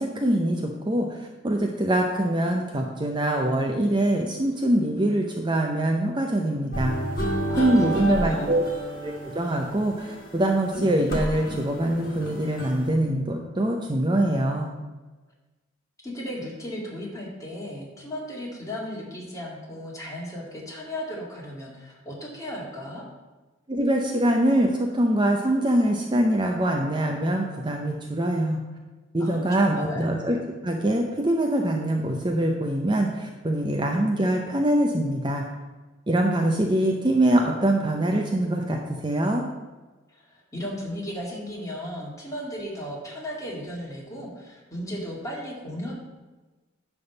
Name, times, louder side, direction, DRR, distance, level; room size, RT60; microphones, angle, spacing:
voice 1, 0.0-6.9 7.6-8.6 9.0-14.7 23.7-28.6 29.1-30.4 30.6-35.4 36.1-39.4, right 1 dB, 25° right, 2 dB, 0.7 m, -24 dB
sound 1, 6.7-12.9, right 1 dB, 50° left, 1.8 m, -31 dB
voice 2, 7.5-8.6 16.0-23.0 29.2-30.1 40.1-45.9, equal, 15° left, -4 dB, 2.2 m, -35 dB
10.5 x 3.6 x 6.9 m, 1.2 s
head